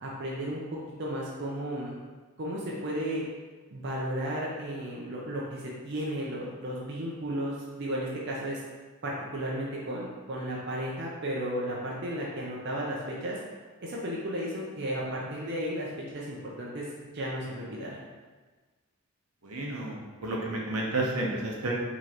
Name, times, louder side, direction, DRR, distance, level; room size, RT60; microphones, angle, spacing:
voice 1, 0.0-2.0 2.4-3.2 3.7-8.6 9.0-13.4 13.8-16.9 17.1-18.0, equal, 50° right, -4 dB, 0.6 m, -34 dB
voice 2, 19.4-21.7, right 2 dB, 85° right, -2 dB, 0.9 m, -31 dB
4.9 x 3.0 x 2.9 m, 1.4 s
head